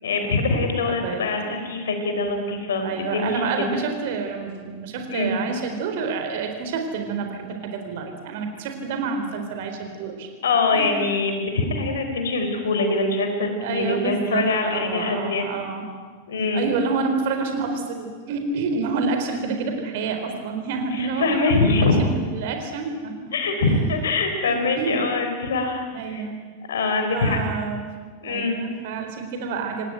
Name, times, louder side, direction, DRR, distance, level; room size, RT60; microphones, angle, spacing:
voice 1, 0.0-3.7 5.1-5.3 10.4-15.5 16.3-16.6 20.9-21.9 23.3-26.2 26.7-27.4 28.2-28.6, left 3 dB, 65° left, 6 dB, 4.4 m, -23 dB
voice 2, 0.8-1.6 2.8-10.3 10.7-11.2 13.6-15.9 16.5-23.7 24.5-25.1 25.9-26.4 27.1-29.9, right 4 dB, 50° right, 5 dB, 4.2 m, -28 dB
26.5 x 19.0 x 9.1 m, 1.5 s
figure-of-eight pair, 90°, 0 cm